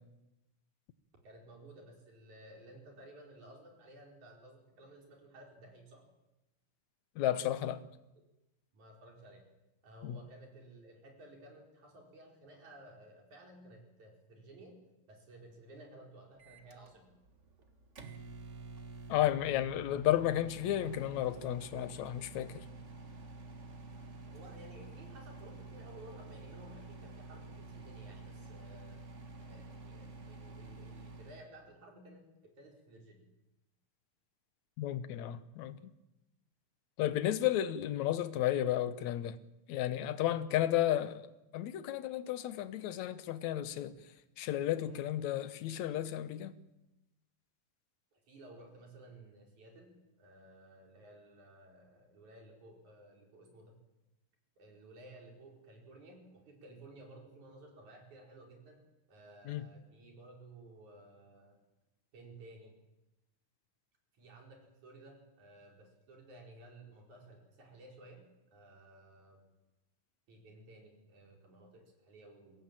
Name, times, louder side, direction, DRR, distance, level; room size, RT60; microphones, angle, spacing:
voice 1, 1.2-6.0 8.7-9.4 9.8-14.8 15.1-17.1 23.1-23.2 24.2-29.0 29.4-33.3 43.9-44.1 44.8-45.1 48.1-53.8 54.6-58.8 59.1-61.6 62.1-62.7 64.1-68.2 68.5-69.4 70.3-72.6, right 1 dB, 80° right, 6.3 m, -55 dB
voice 2, 7.2-7.8 10.0-10.2 19.1-22.5 34.8-35.8 37.0-39.4 39.7-41.3 41.5-43.9 44.4-46.5 59.5-59.6, left 12 dB, 75° left, 2.3 m, -33 dB
Microwave oven, 16.4-31.5, right 3 dB, 30° right, 1.5 m, -49 dB
22.5 x 17.5 x 9.0 m
omnidirectional pair, 3.3 m